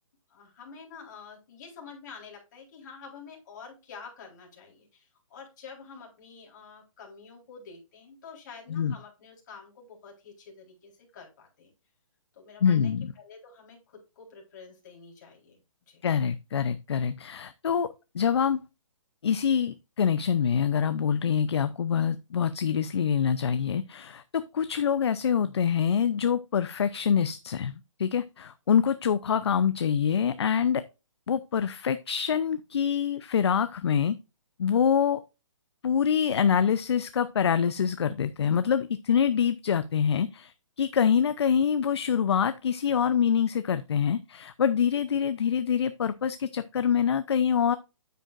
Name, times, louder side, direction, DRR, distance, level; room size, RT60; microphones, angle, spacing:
voice 1, 0.3-11.7 12.3-15.6 15.9-16.0, left 5 dB, 35° left, 4.0 m, -48 dB
voice 2, 12.6-13.1 16.0-18.7 19.2-27.7 28.0-30.8 31.3-34.2 34.6-35.2 35.8-47.8, left 7 dB, 50° left, 0.6 m, -25 dB
9.3 x 8.3 x 2.5 m
hypercardioid pair, 170°, 17 cm